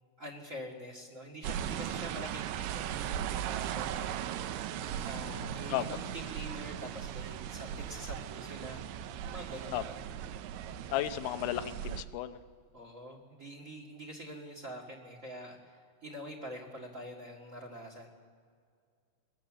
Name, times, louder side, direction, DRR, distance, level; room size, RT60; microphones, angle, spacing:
voice 1, 0.2-4.5 5.0-8.9 9.3-10.0 12.7-18.1, equal, 60° right, -1 dB, 0.8 m, -45 dB
sound 1, 1.4-12.0, right 10 dB, 80° right, 2.4 m, -38 dB
voice 2, 10.9-12.4, left 13 dB, 85° left, 11 dB, 3.1 m, -33 dB
23.5 x 17.5 x 7.5 m, 2.1 s
omnidirectional pair, 5.3 m